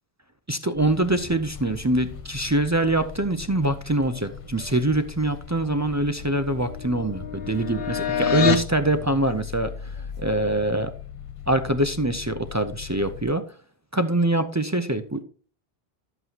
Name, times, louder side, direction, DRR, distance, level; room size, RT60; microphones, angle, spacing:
voice 1, 0.5-10.9 11.5-13.4 13.9-15.2, right 1 dB, 25° right, 8 dB, 0.4 m, -24 dB
sound 1, 0.8-13.3, left 8 dB, 40° left, 0.5 m, -39 dB
sound 2, 5.6-8.7, left 8 dB, 70° left, 1.0 m, -28 dB
11.0 x 7.9 x 2.8 m, 0.40 s
omnidirectional pair, 1.0 m